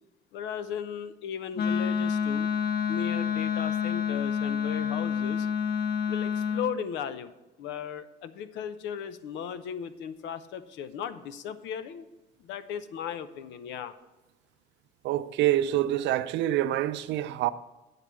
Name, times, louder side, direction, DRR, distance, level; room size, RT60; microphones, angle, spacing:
voice 1, 0.3-2.5 2.9-5.5 6.1-7.3 7.6-12.1 12.4-13.9, left 8 dB, 80° left, 0.8 m, -36 dB
Wind instrument woodwind instrument, 1.5-6.7, left 7 dB, 65° left, 1.1 m, -28 dB
voice 2, 15.0-17.5, right 13 dB, 75° right, 0.5 m, -26 dB
8.4 x 6.6 x 6.1 m
cardioid pair, 110°, 18 cm